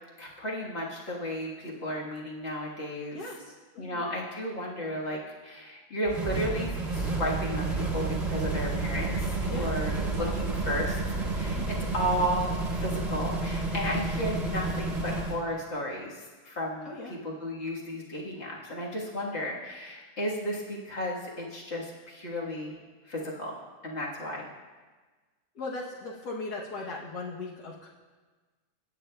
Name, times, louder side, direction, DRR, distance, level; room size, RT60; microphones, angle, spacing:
voice 1, 0.2-3.2 3.8-11.0 11.3-22.8 23.1-23.5 23.8-24.5, equal, 45° left, -3 dB, 1.7 m, -34 dB
voice 2, 3.1-4.1 9.5-9.9 10.2-10.3 10.6-10.8 11.1-11.9 16.8-17.2 25.5-27.9, left 3 dB, 75° left, -3 dB, 1.5 m, -39 dB
sound 1, 6.1-15.4, right 3 dB, 30° right, 1.0 m, -30 dB
17.0 x 8.8 x 2.3 m, 1.3 s
omnidirectional pair, 1.7 m